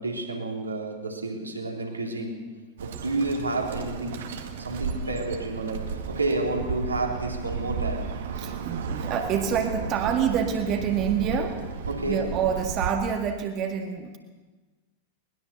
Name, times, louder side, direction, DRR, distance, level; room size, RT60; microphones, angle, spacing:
voice 1, 0.0-8.1 11.9-12.4, right 2 dB, 80° right, 1 dB, 3.6 m, -30 dB
Bird, 2.8-12.9, right 5 dB, 60° right, 2.1 m, -34 dB
voice 2, 8.4-11.6 12.1-14.2, right 7 dB, 35° right, 4 dB, 2.0 m, -27 dB
21.5 x 20.5 x 7.0 m, 1.3 s
figure-of-eight pair, 90°, 0 cm